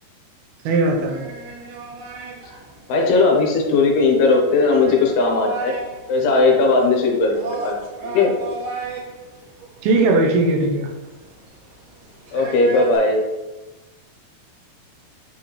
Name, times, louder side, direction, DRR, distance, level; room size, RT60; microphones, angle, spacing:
voice 1, 0.6-1.3 9.8-10.9, right 2 dB, 80° right, 1 dB, 2.5 m, -18 dB
sound 1, 0.9-13.0, right 2 dB, 55° right, 1.9 m, -35 dB
voice 2, 2.9-5.8 6.1-8.3 12.3-13.2, left 3 dB, 80° left, 1 dB, 3.0 m, -18 dB
8.3 x 4.1 x 3.2 m, 1.1 s
omnidirectional pair, 4.6 m